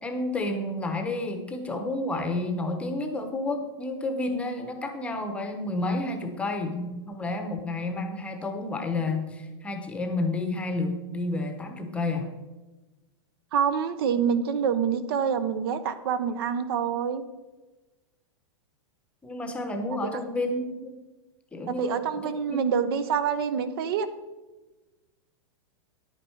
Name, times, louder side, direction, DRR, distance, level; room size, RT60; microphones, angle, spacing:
voice 1, 0.0-12.3 19.2-21.0 21.5-22.2 22.5-22.9, left 2 dB, 10° left, 5 dB, 0.9 m, -30 dB
voice 2, 13.5-17.2 21.7-24.1, right 7 dB, 55° right, 12 dB, 0.8 m, -26 dB
10.5 x 9.0 x 4.5 m, 1.1 s
supercardioid pair, 160°, 15 cm